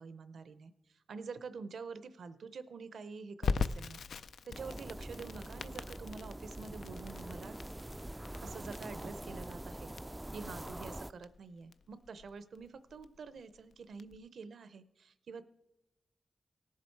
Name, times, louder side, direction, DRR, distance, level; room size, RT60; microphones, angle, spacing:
voice 1, 0.0-4.0 4.5-7.6 8.4-9.9 10.3-15.4, right 5 dB, 80° right, 13 dB, 0.7 m, -47 dB
Crackle, 3.4-14.2, left 5 dB, 85° left, 0.4 m, -41 dB
sound 1, 4.5-11.1, right 1 dB, 15° right, 0.3 m, -45 dB
17.5 x 7.4 x 4.6 m, 0.91 s
cardioid pair, 70°, 0 cm